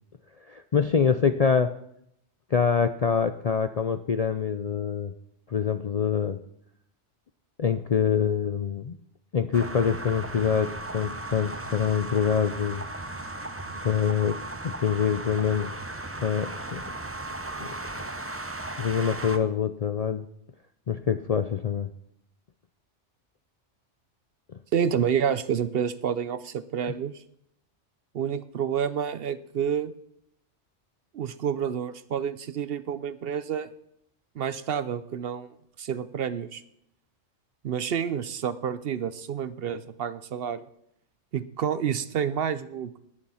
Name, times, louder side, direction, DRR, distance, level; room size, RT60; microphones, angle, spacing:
voice 1, 0.5-1.7 2.5-5.1 5.5-6.4 7.6-8.9 9.3-12.8 13.8-15.8 16.2-16.8 17.6-17.7 18.8-20.3 20.9-21.9, left 7 dB, 50° left, 10 dB, 0.4 m, -25 dB
sound 1, 9.5-19.4, right 2 dB, 15° right, 0.7 m, -36 dB
voice 2, 24.7-27.2 28.1-29.9 31.1-33.7 34.4-36.6 37.6-40.7 41.3-43.0, right 8 dB, 60° right, 15 dB, 0.8 m, -29 dB
19.5 x 6.9 x 5.6 m, 0.73 s
omnidirectional pair, 1.2 m